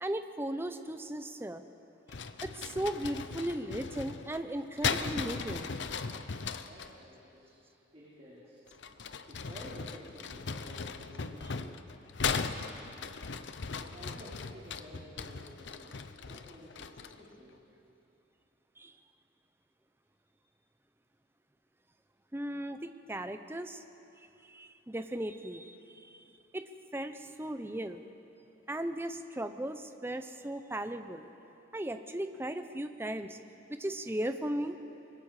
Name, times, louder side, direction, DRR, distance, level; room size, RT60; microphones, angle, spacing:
voice 1, 0.0-1.6 2.4-5.7 18.8-18.9 22.3-22.8 23.1-23.8 24.5-25.8 26.0-26.1 26.5-26.6 26.9-28.0 28.7-31.3 31.7-33.4 33.8-34.8, right 1 dB, 10° right, 9 dB, 0.7 m, -36 dB
sound 1, 2.1-6.9 8.7-17.3, left 5 dB, 70° left, 0.7 m, -38 dB
voice 2, 6.6-7.6 7.9-8.6 9.3-11.7 13.6-15.9 16.3-17.6, equal, 35° right, -8 dB, 3.9 m, -52 dB
24.5 x 21.5 x 4.9 m, 2.8 s
head